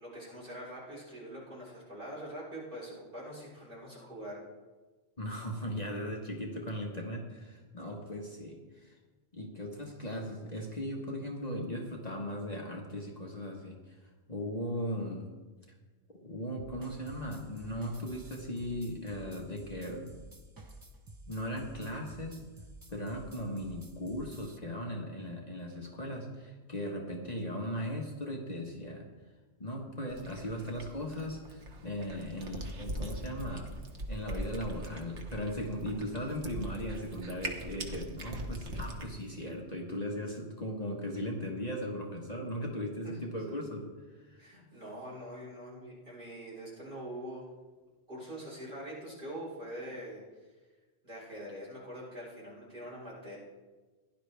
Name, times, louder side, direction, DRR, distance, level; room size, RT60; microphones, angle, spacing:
voice 1, 0.0-4.4 43.0-43.3 44.4-47.5 48.1-50.2 51.0-53.4, equal, 50° right, -6 dB, 4.5 m, -44 dB
voice 2, 5.2-8.9 9.3-14.0 14.3-15.3 16.2-20.1 21.3-22.4 22.9-29.1 29.6-33.7 34.1-43.9 44.3-44.5, equal, 35° left, -1 dB, 1.4 m, -38 dB
sound 1, 16.6-24.6, right 1 dB, 25° right, 0.6 m, -51 dB
Cat, 30.1-39.1, right 1 dB, 85° right, 1.5 m, -41 dB
16.0 x 11.0 x 3.4 m, 1.3 s
omnidirectional pair, 1.2 m